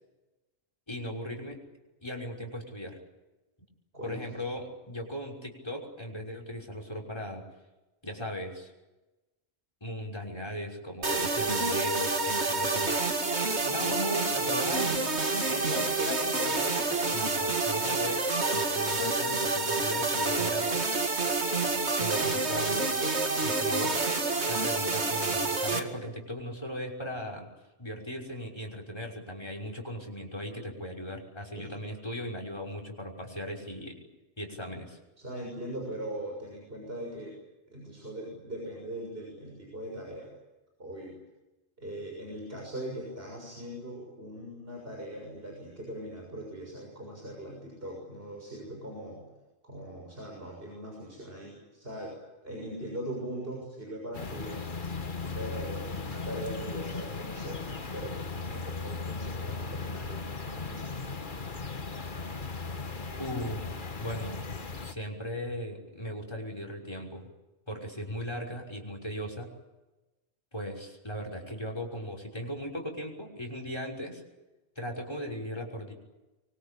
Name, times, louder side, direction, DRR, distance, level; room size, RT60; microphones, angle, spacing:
voice 1, 0.9-1.6 2.0-3.0 4.0-7.4 8.0-8.7 9.8-15.1 15.5-20.8 22.0-23.1 23.4-24.0 24.5-27.5 27.8-34.0 34.4-35.0 63.2-64.6 64.8-67.3 67.7-69.5 70.5-74.2 74.8-75.9, equal, 25° left, 3 dB, 6.0 m, -37 dB
voice 2, 3.9-4.3 31.5-31.7 35.2-37.4 37.7-40.3 40.8-41.1 41.8-49.3 49.6-52.1 52.4-54.7 55.3-57.6 57.9-61.0, right 1 dB, 60° right, 0 dB, 7.2 m, -40 dB
sound 1, 11.0-25.8, right 3 dB, 80° right, 2.6 m, -28 dB
sound 2, 54.1-64.9, left 4 dB, 50° left, 1.6 m, -37 dB
25.5 x 24.5 x 8.7 m, 1.1 s
omnidirectional pair, 1.1 m